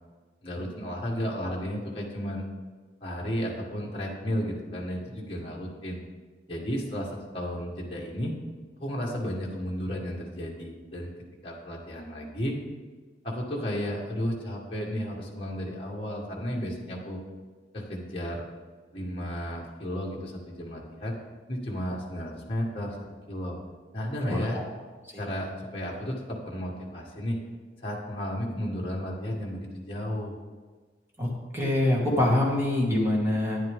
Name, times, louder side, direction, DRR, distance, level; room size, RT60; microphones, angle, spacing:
voice 1, 0.4-2.5 3.0-6.0 6.5-8.3 8.8-11.1 11.4-12.6 13.2-17.2 17.7-18.4 18.9-21.1 21.5-23.0 23.3-23.5 23.9-24.6 25.2-27.4 27.8-30.3, equal, 30° left, -3 dB, 1.7 m, -33 dB
voice 2, 24.3-24.6 31.2-33.6, left 1 dB, 15° right, -4 dB, 2.1 m, -25 dB
12.0 x 9.8 x 3.7 m, 1.5 s
head